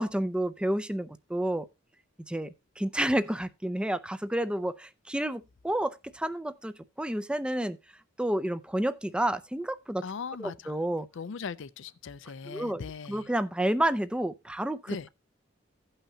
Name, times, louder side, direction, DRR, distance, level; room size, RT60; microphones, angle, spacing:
voice 1, 0.0-1.7 2.3-7.8 8.2-10.0 10.4-11.1 12.5-12.8 13.1-15.1, right 1 dB, 5° right, 0.4 m, -30 dB
voice 2, 10.0-10.8 11.1-13.3 14.9-15.1, left 5 dB, 65° left, 0.5 m, -39 dB
16.5 x 5.7 x 2.8 m
head